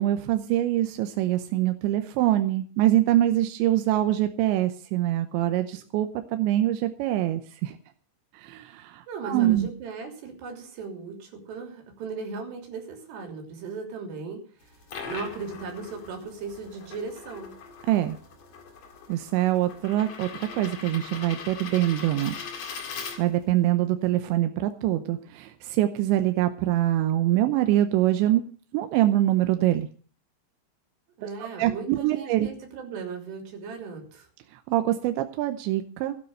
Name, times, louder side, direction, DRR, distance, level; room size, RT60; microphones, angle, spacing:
voice 1, 0.0-7.8 8.3-9.7 17.9-18.2 19.1-22.4 23.2-28.4 28.7-29.9 31.2-31.3 31.6-32.5 34.5-36.2, right 13 dB, 75° right, 8 dB, 2.8 m, -24 dB
voice 2, 9.1-14.4 15.0-17.5 31.2-34.3, right 4 dB, 60° right, 3 dB, 5.1 m, -37 dB
sound 1, 14.6-23.6, left 5 dB, 45° left, 2.6 m, -41 dB
16.0 x 9.7 x 6.5 m, 0.43 s
omnidirectional pair, 5.9 m